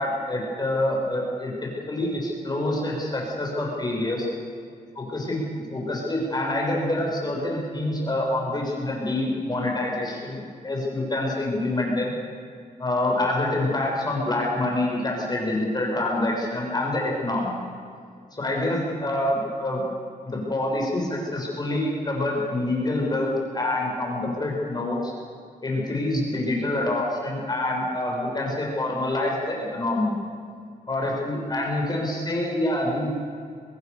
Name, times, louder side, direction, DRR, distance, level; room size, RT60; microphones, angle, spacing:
voice 1, 0.0-1.5 1.9-4.3 5.0-5.4 5.7-12.1 12.8-17.6 18.3-19.8 20.2-25.1 25.6-30.1 30.9-33.1, left 1 dB, 30° left, -2 dB, 7.1 m, -26 dB
25.0 x 20.5 x 6.9 m, 2.3 s
wide cardioid pair, 110°, 15 cm